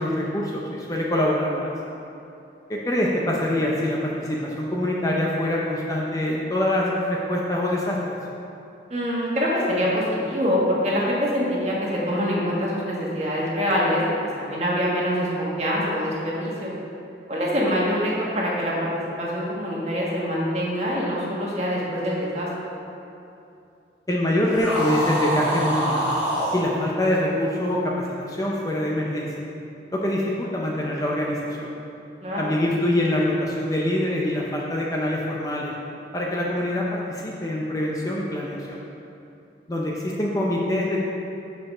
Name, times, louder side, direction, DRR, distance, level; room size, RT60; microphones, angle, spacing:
voice 1, 0.0-1.7 2.7-8.2 24.1-26.1 26.5-29.3 29.9-31.7 32.4-35.7 36.1-38.8 39.7-41.0, left 1 dB, 20° left, -3 dB, 0.6 m, -24 dB
voice 2, 8.9-14.0 14.4-16.7 17.3-18.7 19.2-22.5 32.2-32.5, equal, 35° right, -5 dB, 1.5 m, -25 dB
sound 1, 24.5-26.6, equal, 5° right, 1.4 m, -25 dB
6.8 x 4.8 x 6.1 m, 2.7 s
head